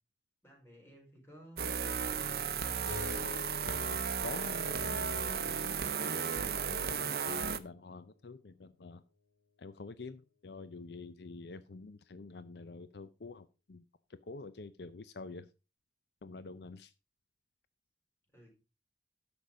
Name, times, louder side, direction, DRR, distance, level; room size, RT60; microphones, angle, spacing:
voice 1, 0.4-3.0 18.3-18.5, equal, 15° left, -1 dB, 4.5 m, -54 dB
sound 1, 1.6-7.6, right 6 dB, 55° right, 0.8 m, -34 dB
Keyboard (musical), 2.8-8.0, left 5 dB, 90° left, 2.7 m, -50 dB
voice 2, 3.6-5.8 6.3-9.0 9.6-13.8 14.3-15.5 16.2-16.9, left 3 dB, 70° left, 14 dB, 0.6 m, -47 dB
10.5 x 7.1 x 4.8 m, 0.31 s
head